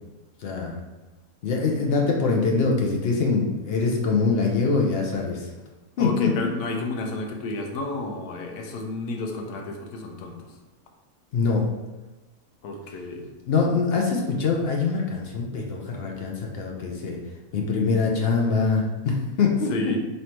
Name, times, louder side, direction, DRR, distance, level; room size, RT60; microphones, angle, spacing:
voice 1, 0.4-0.8 1.4-5.5 6.0-6.5 11.3-11.7 13.5-17.2 17.5-19.9, left 4 dB, 65° left, 0 dB, 0.6 m, -24 dB
voice 2, 6.0-10.4 12.6-13.3 19.7-20.0, left 2 dB, 85° left, 2 dB, 1.1 m, -31 dB
3.3 x 2.7 x 4.3 m, 1.1 s
omnidirectional pair, 1.6 m